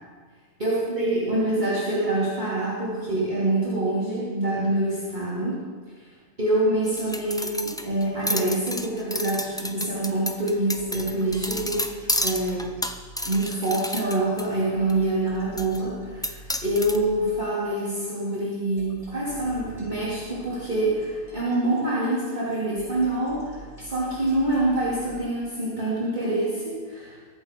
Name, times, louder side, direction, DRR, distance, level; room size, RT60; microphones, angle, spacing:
voice 1, 0.6-5.6 6.4-11.9 12.2-12.7 13.2-27.2, right 1 dB, 35° right, -9 dB, 3.0 m, -26 dB
sound 1, 6.9-14.5 14.9-15.0 15.6-15.8 16.2-17.0, left 1 dB, 5° left, 0.3 m, -30 dB
sound 2, 9.8-25.1, right 1 dB, 25° left, 5.3 m, -46 dB
22.5 x 8.0 x 5.2 m, 1.5 s
omnidirectional pair, 1.4 m